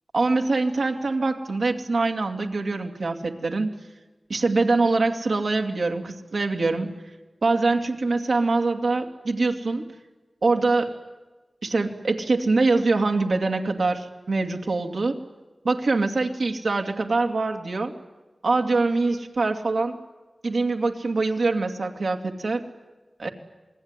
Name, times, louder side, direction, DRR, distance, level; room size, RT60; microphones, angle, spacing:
voice 1, 0.1-3.7 4.3-6.9 7.4-9.8 10.4-10.9 11.6-15.2 15.6-17.9 18.4-20.0 20.4-22.7 23.2-23.3, right 3 dB, 85° right, 3 dB, 2.3 m, -24 dB
27.5 x 20.5 x 9.8 m, 1.2 s
wide cardioid pair, 50°, 0 cm